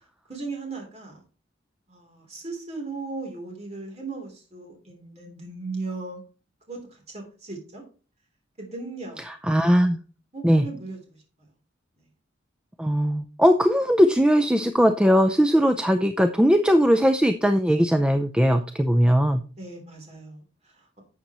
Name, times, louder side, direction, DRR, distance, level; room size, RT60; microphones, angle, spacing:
voice 1, 0.3-1.2 1.9-6.2 6.7-7.8 8.6-9.2 10.3-11.2 19.6-21.0, right 3 dB, 35° right, 1 dB, 3.3 m, -37 dB
voice 2, 9.5-10.0 10.4-10.6 12.8-19.4, equal, 5° right, 8 dB, 0.5 m, -19 dB
11.5 x 7.9 x 3.0 m, 0.36 s
head